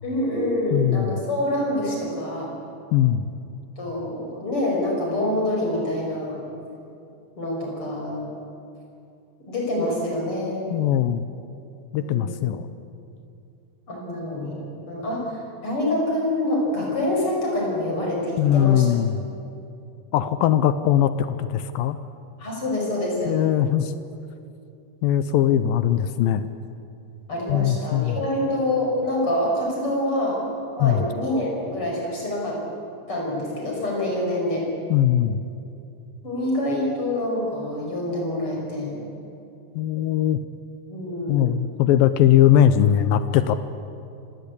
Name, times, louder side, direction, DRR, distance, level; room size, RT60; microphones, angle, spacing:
voice 1, 0.0-2.5 3.8-6.5 7.4-8.3 9.5-10.7 11.9-12.4 13.9-18.8 22.4-23.4 27.3-30.5 30.8-32.6 33.1-34.7 36.2-39.0 40.9-41.5, left 1 dB, 30° left, -2 dB, 6.4 m, -26 dB
voice 2, 0.7-1.2 2.9-3.3 10.7-11.3 11.9-12.7 18.4-19.2 20.1-22.0 23.3-24.0 25.0-26.5 27.5-28.2 30.8-31.1 34.9-35.4 39.8-40.4 41.3-43.6, left 10 dB, 80° left, 12 dB, 2.2 m, -20 dB
26.5 x 17.5 x 8.5 m, 2.7 s
omnidirectional pair, 4.7 m